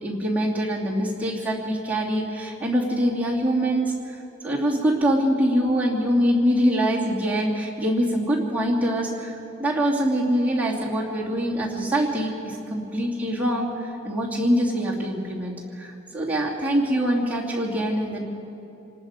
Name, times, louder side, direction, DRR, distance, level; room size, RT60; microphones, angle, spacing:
voice 1, 0.0-4.2 4.4-9.3 9.6-13.7 14.0-18.2, equal, 5° right, -6 dB, 2.6 m, -24 dB
28.0 x 19.0 x 5.1 m, 2.8 s
head